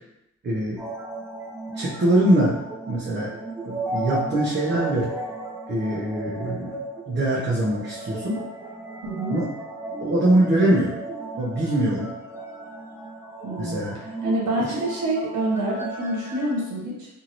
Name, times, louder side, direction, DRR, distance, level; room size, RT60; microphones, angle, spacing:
voice 1, 0.4-0.8 1.7-2.6 2.8-3.3 3.6-5.1 5.7-6.8 7.1-8.4 9.3-9.5 10.0-10.9 11.4-12.1 13.6-14.0 14.6-14.7, right 1 dB, 35° right, -7 dB, 0.8 m, -23 dB
sound 1, 0.8-16.5, right 2 dB, 10° right, 0.9 m, -35 dB
voice 2, 9.0-9.4 13.4-13.9 14.2-17.1, right 1 dB, 75° right, -4 dB, 1.2 m, -27 dB
2.7 x 2.6 x 2.9 m, 0.86 s
cardioid pair, 90°, 30 cm